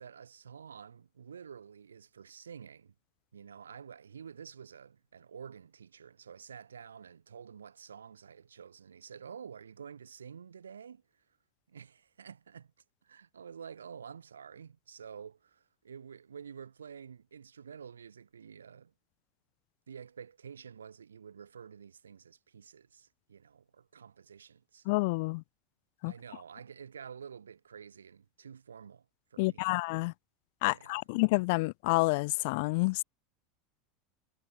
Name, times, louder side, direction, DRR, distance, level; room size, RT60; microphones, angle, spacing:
voice 1, 0.0-2.9 3.3-11.0 11.7-12.7 13.0-18.9 19.9-24.9 26.0-29.1 29.3-29.7 30.7-31.0, right 7 dB, 80° right, 4.1 m, -49 dB
voice 2, 24.9-25.4 26.0-26.1 29.4-30.1 30.6-33.0, left 26 dB, 60° left, 0.5 m, -29 dB
figure-of-eight pair, 80°, 0 cm